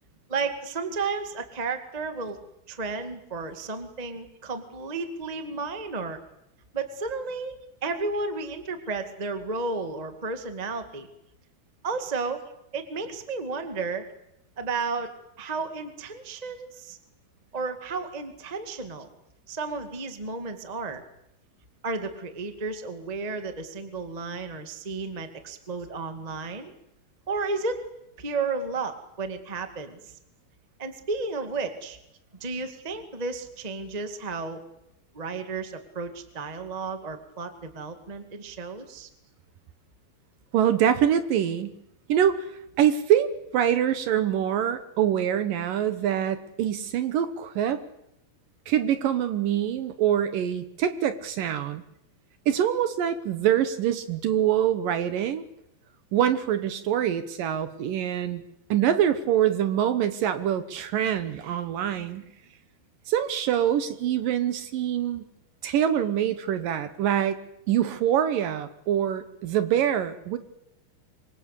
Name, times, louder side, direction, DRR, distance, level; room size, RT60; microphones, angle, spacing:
voice 1, 0.3-2.4 2.7-6.2 6.7-11.1 11.8-12.4 12.7-14.0 14.6-17.0 17.5-19.1 19.5-21.0 21.8-26.7 27.3-27.9 28.2-30.1 30.8-32.0 32.4-34.6 35.1-39.1, right 4 dB, 20° right, 8 dB, 1.2 m, -33 dB
voice 2, 40.5-41.7 42.1-42.5 42.8-47.8 48.7-51.8 52.5-55.4 56.1-58.4 58.7-62.2 63.1-65.2 65.6-67.4 67.7-70.4, right 10 dB, 70° right, 11 dB, 2.6 m, -25 dB
25.5 x 24.0 x 8.4 m, 0.81 s
omnidirectional pair, 4.5 m